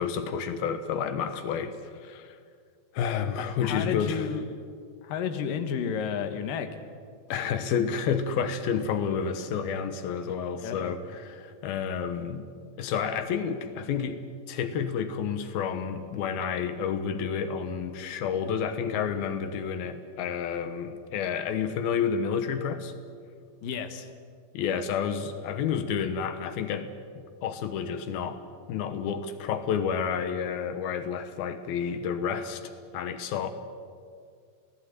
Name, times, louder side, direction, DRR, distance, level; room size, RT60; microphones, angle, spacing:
voice 1, 0.0-1.8 2.0-2.4 2.9-4.3 7.3-12.5 12.8-14.2 14.5-22.9 24.5-28.4 28.7-33.5, left 7 dB, 90° left, 9 dB, 3.1 m, -30 dB
voice 2, 3.6-4.4 5.0-6.7 10.6-11.0 23.6-24.1, left 7 dB, 75° left, 7 dB, 3.1 m, -31 dB
27.5 x 18.5 x 9.4 m, 2.1 s
omnidirectional pair, 4.2 m